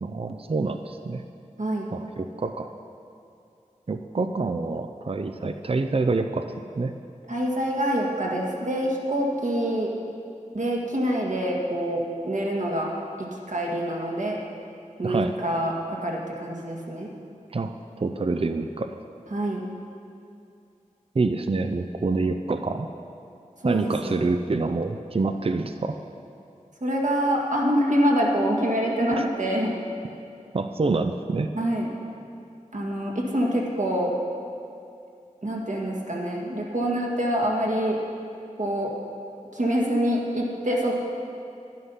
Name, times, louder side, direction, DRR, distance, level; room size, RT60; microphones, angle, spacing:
voice 1, 0.0-1.2 1.9-2.7 3.9-6.5 6.8-6.9 15.0-15.4 17.5-19.0 21.1-22.9 23.6-26.0 29.1-29.2 30.5-31.5, right 3 dB, 45° right, 7 dB, 0.5 m, -26 dB
voice 2, 7.3-9.9 10.5-12.9 13.2-14.4 15.0-17.1 19.3-19.6 23.6-24.1 26.8-29.7 31.6-31.9 32.7-34.1 35.4-38.0 38.6-38.9 39.5-40.9, equal, 65° right, -2 dB, 1.9 m, -25 dB
11.5 x 11.0 x 5.6 m, 2.6 s
wide cardioid pair, 55°, 13 cm